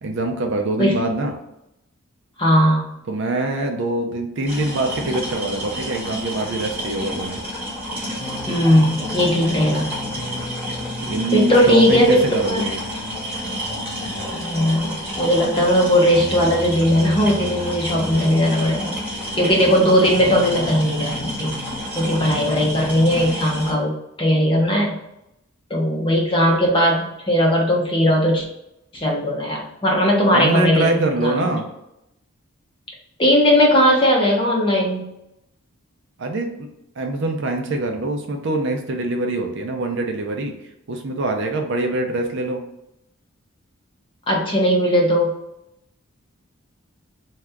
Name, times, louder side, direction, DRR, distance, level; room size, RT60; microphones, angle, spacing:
voice 1, 0.0-1.3 3.1-7.4 10.1-10.4 11.0-12.8 30.3-31.7 36.2-36.7 37.0-40.5 40.9-42.6, right 2 dB, 55° right, 3 dB, 0.5 m, -24 dB
voice 2, 2.4-2.9 8.5-9.9 11.3-12.2 12.5-12.7 14.3-19.0 19.4-21.5 22.0-23.9 24.2-25.0 25.7-28.5 28.9-31.6 33.2-35.1 44.3-45.3, equal, 25° left, -2 dB, 0.6 m, -18 dB
sound 1, 4.5-23.7, equal, 10° right, 1.1 m, -30 dB
sound 2, 8.2-21.9 22.2-23.4, left 3 dB, 60° left, 0.7 m, -37 dB
2.7 x 2.3 x 3.4 m, 0.82 s
head